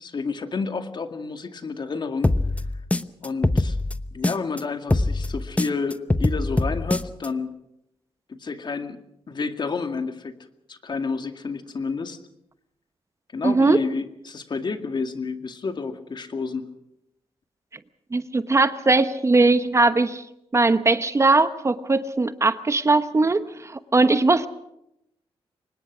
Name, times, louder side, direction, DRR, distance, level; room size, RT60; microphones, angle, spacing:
voice 1, 0.0-2.7 3.2-3.8 4.1-7.5 8.3-9.0 9.3-10.3 10.7-12.2 13.3-16.6, left 4 dB, 45° left, 7 dB, 2.1 m, -30 dB
sound 1, 2.2-4.6 4.9-7.3, left 2 dB, 15° left, 0.9 m, -23 dB
voice 2, 13.4-13.8 18.1-20.2 20.5-24.5, right 3 dB, 30° right, 12 dB, 1.0 m, -20 dB
24.5 x 20.0 x 6.2 m, 0.83 s
cardioid pair, 80°, 10 cm